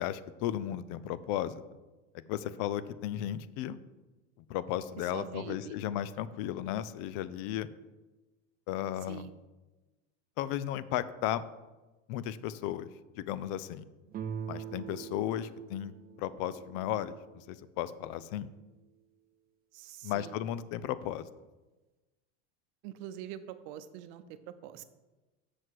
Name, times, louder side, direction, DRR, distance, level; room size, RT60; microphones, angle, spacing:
voice 1, 0.0-1.6 2.3-3.8 4.5-7.7 8.7-9.3 10.4-11.4 12.1-12.9 13.2-13.9 14.5-15.9 16.2-18.5 20.0-21.3, left 11 dB, 60° left, 16 dB, 0.6 m, -35 dB
voice 2, 5.0-5.8 9.1-9.3 19.7-20.4 22.8-24.8, right 11 dB, 65° right, 11 dB, 0.8 m, -44 dB
sound 1, 14.1-17.7, right 8 dB, 25° right, 0.5 m, -43 dB
7.7 x 6.3 x 4.7 m, 1.1 s
supercardioid pair, 130°, 36 cm